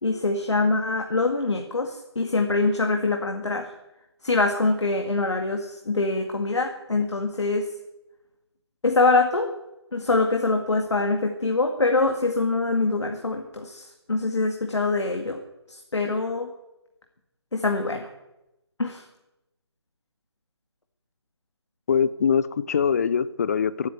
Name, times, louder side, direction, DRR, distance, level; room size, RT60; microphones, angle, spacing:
voice 1, 0.0-3.7 4.2-7.7 8.8-9.5 9.9-15.4 15.7-16.5 17.5-18.1 18.8-19.0, left 3 dB, 90° left, 4 dB, 2.0 m, -24 dB
voice 2, 21.9-23.9, left 7 dB, 35° left, 17 dB, 0.6 m, -23 dB
15.5 x 9.4 x 9.1 m, 0.94 s
figure-of-eight pair, 160°, 14 cm